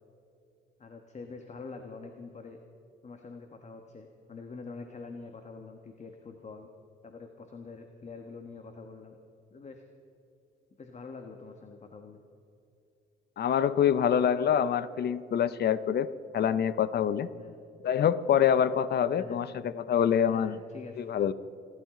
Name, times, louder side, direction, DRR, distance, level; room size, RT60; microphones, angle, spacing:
voice 1, 0.8-2.6 3.0-6.7 7.0-9.1 9.5-9.8 10.8-12.2 17.3-17.6 19.2-19.4 20.3-21.0, left 4 dB, 35° left, 5 dB, 1.3 m, -45 dB
voice 2, 13.4-17.3 17.8-20.5 21.0-21.3, left 8 dB, 55° left, 14 dB, 0.7 m, -26 dB
29.0 x 12.5 x 3.8 m, 2.7 s
cardioid pair, 90°, 20 cm